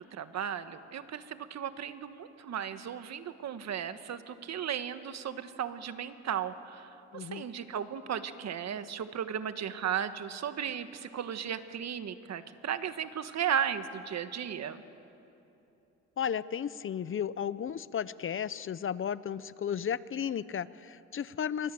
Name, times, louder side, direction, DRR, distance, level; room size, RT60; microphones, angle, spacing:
voice 1, 0.0-14.8, right 8 dB, 60° right, 10 dB, 1.4 m, -35 dB
voice 2, 7.1-7.5 16.2-21.7, left 8 dB, 45° left, 17 dB, 0.7 m, -34 dB
27.0 x 23.0 x 7.8 m, 2.9 s
cardioid pair, 90°, 30 cm